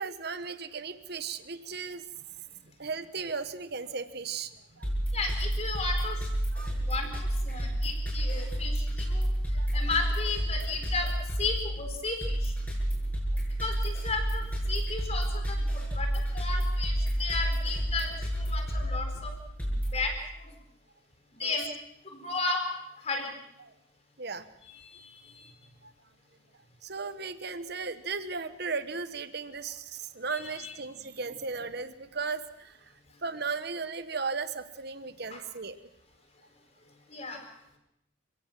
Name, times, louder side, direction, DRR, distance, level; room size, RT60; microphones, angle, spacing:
voice 1, 0.0-2.0 2.8-4.9 6.5-6.8 7.6-7.7 9.6-9.9 21.4-21.6 23.6-23.7 24.2-24.4 25.8-25.9 26.8-32.9 33.2-35.8, right 4 dB, 55° right, 12 dB, 1.2 m, -36 dB
sound 1, 4.8-20.0, right 1 dB, 10° left, 7.4 m, -30 dB
voice 2, 5.1-6.3 6.6-11.1 11.4-12.5 13.6-19.3 19.6-20.5 21.3-21.7 22.0-22.6 23.0-23.3 24.7-25.5 30.3-30.7 35.3-35.4 37.1-37.4, left 3 dB, 30° left, 4 dB, 4.2 m, -34 dB
29.5 x 17.0 x 6.0 m, 0.78 s
head